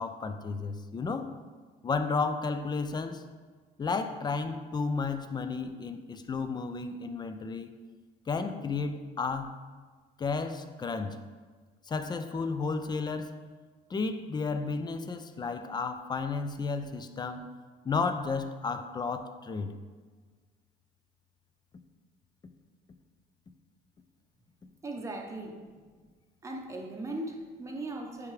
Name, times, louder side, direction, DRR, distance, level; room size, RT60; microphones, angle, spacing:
voice 1, 0.0-1.3 1.8-3.2 3.8-7.7 8.3-9.6 10.2-11.2 11.9-13.4 13.9-17.5 17.8-19.7, left 4 dB, 25° left, 0.4 m, -32 dB
voice 2, 24.8-25.7 26.4-28.3, right 2 dB, 20° right, 0.8 m, -38 dB
9.3 x 3.5 x 3.2 m
cardioid pair, 110°, 17 cm